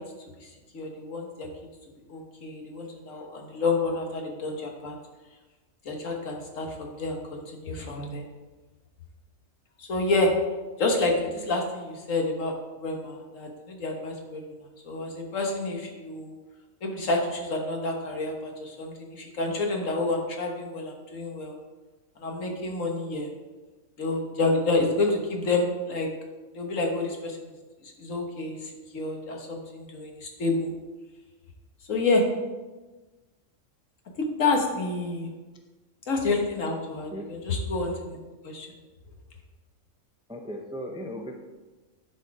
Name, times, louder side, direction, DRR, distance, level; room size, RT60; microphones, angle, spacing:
voice 1, 0.4-1.5 2.1-4.9 5.8-8.2 9.8-10.3 10.8-14.5 14.8-16.3 16.8-21.6 22.2-23.3 24.0-26.1 26.5-27.5 27.8-30.7 31.9-32.3 34.3-35.3 36.1-38.2 38.4-38.7, left 2 dB, 75° left, 1 dB, 1.7 m, -29 dB
voice 2, 40.3-41.4, equal, 5° right, 3 dB, 0.4 m, -36 dB
10.5 x 4.5 x 4.8 m, 1.2 s
omnidirectional pair, 1.4 m